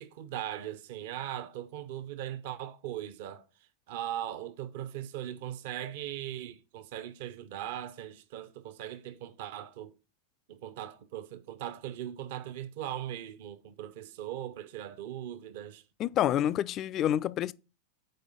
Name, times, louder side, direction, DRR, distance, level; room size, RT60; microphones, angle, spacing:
voice 1, 0.0-3.5 3.9-9.9 10.5-15.8, right 11 dB, 50° right, 0.6 m, -39 dB
voice 2, 16.0-17.5, left 11 dB, 35° left, 0.3 m, -28 dB
7.7 x 4.8 x 5.1 m
figure-of-eight pair, 90°, 0 cm